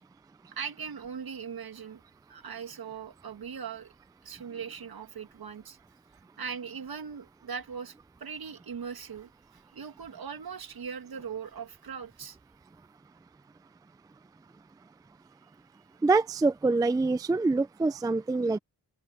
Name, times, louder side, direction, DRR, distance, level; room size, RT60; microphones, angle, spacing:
voice 1, 0.5-2.0 2.3-3.9 4.2-5.8 6.4-12.4, right 6 dB, 70° right, 2.0 m, -40 dB
voice 2, 16.0-18.6, right 3 dB, 10° right, 0.3 m, -25 dB
open air
wide cardioid pair, 125°, 38 cm